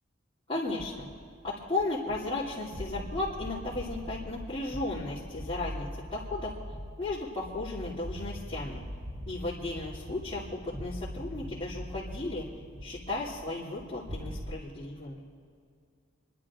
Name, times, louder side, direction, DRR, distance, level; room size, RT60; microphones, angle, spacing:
voice 1, 0.5-1.1 1.4-6.5 7.0-8.8 9.3-10.4 10.8-12.4 12.8-15.2, left 2 dB, 25° left, -10 dB, 2.8 m, -35 dB
sound 1, 0.7-14.6, equal, 15° right, 0.9 m, -42 dB
28.0 x 11.5 x 3.7 m, 2.3 s
head